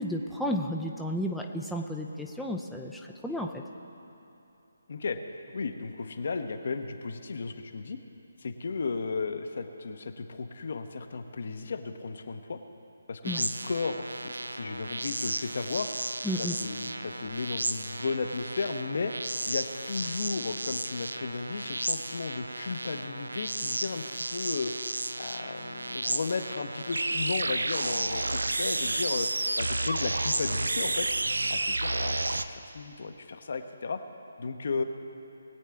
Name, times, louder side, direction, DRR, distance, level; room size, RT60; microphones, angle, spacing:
voice 1, 0.0-3.6 13.2-13.4 16.2-16.6, equal, ahead, -1 dB, 0.5 m, -32 dB
voice 2, 5.5-8.0 8.4-12.6 13.1-14.0 14.5-15.9 16.4-19.1 19.5-24.7 25.2-29.3 29.6-31.1 31.5-34.0 34.4-34.8, left 4 dB, 55° left, 7 dB, 0.9 m, -34 dB
sound 1, 13.2-32.4, right 2 dB, 75° right, 0.5 m, -32 dB
20.5 x 8.5 x 3.6 m, 2.8 s
figure-of-eight pair, 145°, 0 cm